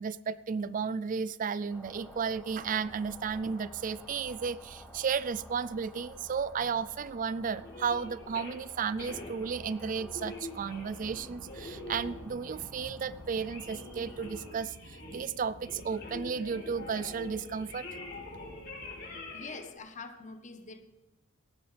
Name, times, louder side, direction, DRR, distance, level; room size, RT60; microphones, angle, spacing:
voice 1, 0.0-17.8, right 6 dB, 45° right, 17 dB, 0.4 m, -33 dB
sound 1, 1.7-14.5, equal, 5° left, 4.4 m, -52 dB
sound 2, 7.5-8.6 9.0-15.3 15.6-19.8, left 2 dB, 55° left, 4.9 m, -45 dB
sound 3, 10.5-19.6, equal, 75° right, 1.5 m, -52 dB
voice 2, 19.3-20.8, left 4 dB, 40° left, 8 dB, 1.2 m, -45 dB
18.0 x 14.0 x 3.4 m, 1.0 s
head